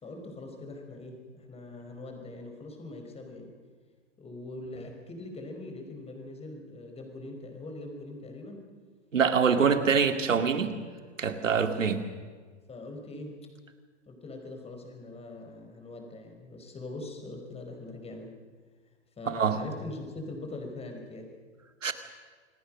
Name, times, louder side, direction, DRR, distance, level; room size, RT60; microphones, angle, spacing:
voice 1, 0.0-3.5 4.2-8.6 9.7-10.3 11.5-11.9 12.7-13.5 14.1-18.3 19.2-21.3, left 2 dB, 15° left, 3 dB, 5.1 m, -42 dB
voice 2, 9.1-10.7 11.2-12.0 19.3-19.6 21.8-21.9, right 6 dB, 90° right, 8 dB, 2.4 m, -24 dB
28.0 x 19.5 x 6.4 m, 1.5 s
hypercardioid pair, 120°, 37 cm